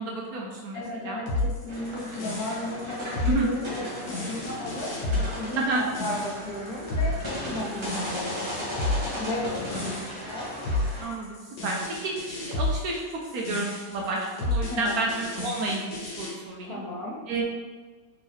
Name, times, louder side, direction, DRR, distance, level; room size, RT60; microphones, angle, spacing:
voice 1, 0.0-1.2 3.3-3.5 5.6-5.8 11.0-13.0 13.3-16.8 17.3-17.4, right 2 dB, 70° right, -2 dB, 0.9 m, -30 dB
voice 2, 0.7-10.5 10.9-11.3 14.7-15.0 16.6-17.2, left 1 dB, 70° left, -1 dB, 1.0 m, -35 dB
sound 1, 1.3-16.3, left 2 dB, 85° left, 1.6 m, -31 dB
sound 2, 1.7-11.0, left 1 dB, 25° right, 0.6 m, -36 dB
3.5 x 3.0 x 3.1 m, 1.4 s
omnidirectional pair, 1.8 m